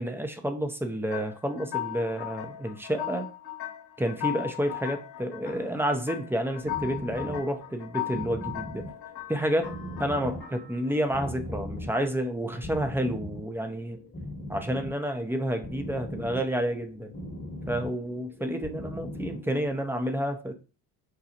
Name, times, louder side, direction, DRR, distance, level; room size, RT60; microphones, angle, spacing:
voice 1, 0.0-3.3 4.0-8.8 9.3-14.0 14.5-17.1 17.7-20.5, equal, 5° right, 5 dB, 0.6 m, -30 dB
sound 1, 1.1-11.0, left 13 dB, 50° left, 1.0 m, -38 dB
sound 2, 6.5-19.7, left 1 dB, 25° left, 1.1 m, -40 dB
5.2 x 2.2 x 2.9 m, 0.35 s
hypercardioid pair, 60°, 49 cm